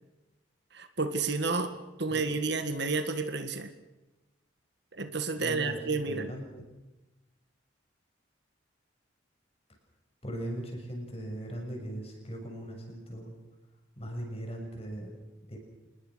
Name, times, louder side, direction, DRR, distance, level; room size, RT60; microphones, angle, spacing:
voice 1, 0.7-1.7 2.0-3.7 4.9-6.3, right 4 dB, 55° right, 9 dB, 1.8 m, -31 dB
voice 2, 5.4-6.6 10.2-13.3 14.0-15.2 15.5-15.6, equal, 30° left, 2 dB, 6.7 m, -39 dB
26.5 x 21.0 x 6.3 m, 1.0 s
head